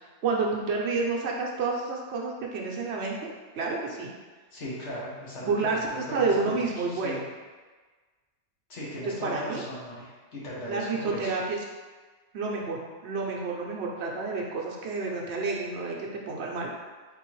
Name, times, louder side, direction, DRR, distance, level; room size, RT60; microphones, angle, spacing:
voice 1, 0.2-4.1 5.4-7.2 9.2-9.6 10.7-11.6 12.3-16.0 16.3-16.7, right 3 dB, 65° right, -1 dB, 0.9 m, -29 dB
voice 2, 4.5-7.2 8.7-11.3, equal, 70° left, -6 dB, 1.5 m, -38 dB
4.0 x 3.7 x 3.0 m, 1.4 s
omnidirectional pair, 1.2 m